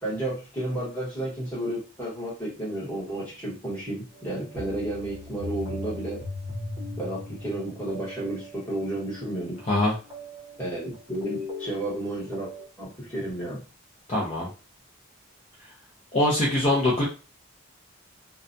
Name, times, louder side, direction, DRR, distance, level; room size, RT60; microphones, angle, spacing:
voice 1, 0.0-6.2 7.0-9.6 10.6-12.5 12.8-13.6, right 1 dB, 10° left, -7 dB, 1.2 m, -32 dB
sound 1, 4.1-12.6, left 2 dB, 20° right, 0.8 m, -39 dB
voice 2, 14.1-14.5 16.1-17.0, left 1 dB, 35° left, -4 dB, 0.5 m, -23 dB
2.3 x 2.2 x 2.6 m, 0.34 s
head